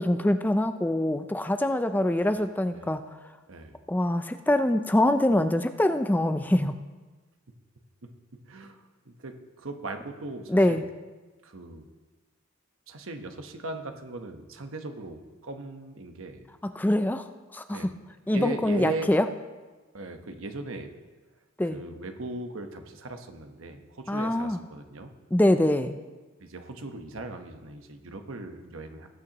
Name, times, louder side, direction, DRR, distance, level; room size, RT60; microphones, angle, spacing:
voice 1, 0.0-3.0 3.9-6.7 10.5-10.8 16.8-17.3 17.5-17.9 18.3-19.3 21.6-21.8 24.1-24.6 25.3-26.0, left 1 dB, 10° left, 9 dB, 0.4 m, -24 dB
voice 2, 3.5-3.8 8.0-8.1 8.5-9.3 9.6-10.9 11.4-11.8 12.9-16.5 17.7-17.9 18.3-19.1 19.9-20.9 21.6-25.1 26.4-29.1, right 2 dB, 90° right, 6 dB, 1.1 m, -38 dB
19.5 x 8.9 x 3.0 m, 1.3 s
head